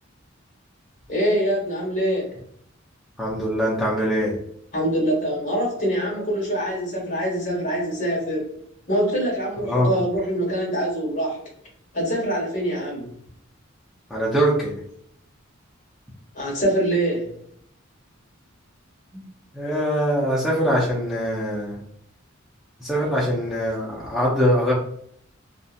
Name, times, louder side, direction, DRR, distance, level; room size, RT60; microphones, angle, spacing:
voice 1, 1.1-2.3 4.7-8.5 8.9-11.4 11.9-13.1 16.3-17.3 19.1-19.2, right 1 dB, 40° left, -2 dB, 1.1 m, -24 dB
voice 2, 3.2-4.4 9.6-9.9 14.1-14.7 19.5-21.8 22.8-24.7, equal, ahead, -6 dB, 0.5 m, -22 dB
2.7 x 2.4 x 2.5 m, 0.66 s
head